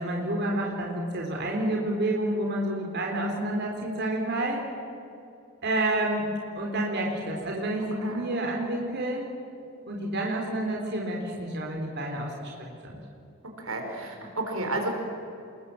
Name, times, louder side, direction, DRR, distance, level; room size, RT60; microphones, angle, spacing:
voice 1, 0.0-4.6 5.6-6.3 6.6-9.2 9.9-13.0, right 1 dB, 55° right, -1 dB, 3.8 m, -29 dB
voice 2, 13.4-14.9, right 2 dB, 90° right, 3 dB, 5.1 m, -32 dB
28.5 x 21.5 x 7.7 m, 2.7 s
head